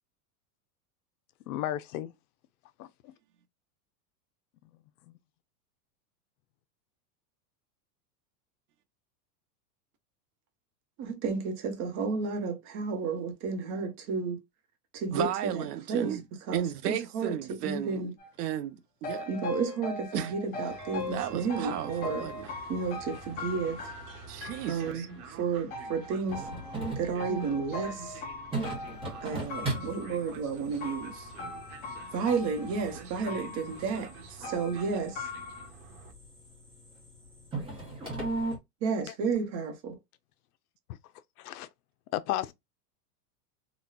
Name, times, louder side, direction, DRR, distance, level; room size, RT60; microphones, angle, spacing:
voice 1, 1.5-2.1 2.8-3.1 41.4-41.7 42.1-42.5, left 13 dB, 70° left, 0.6 m, -33 dB
voice 2, 11.0-14.4 14.9-16.2 16.5-18.1 19.3-22.3 22.7-23.9 24.7-26.5 26.8-28.2 29.2-31.3 32.1-35.3 38.8-40.0, right 5 dB, 35° right, 0.9 m, -32 dB
voice 3, 15.1-16.2 16.5-18.1 18.4-19.3 20.1-20.3 21.1-22.5 24.3-25.1 27.3-27.5, right 11 dB, 80° right, 0.8 m, -34 dB
sound 1, 18.2-18.3 19.0-25.0 25.7-30.4 30.8-33.0 33.3-35.7, left 3 dB, 20° left, 0.5 m, -40 dB
Train, 20.7-36.1, right 4 dB, 60° right, 1.2 m, -48 dB
sound 2, 26.3-38.6, right 2 dB, 10° right, 0.9 m, -39 dB
4.0 x 2.3 x 2.3 m
supercardioid pair, 160°, 47 cm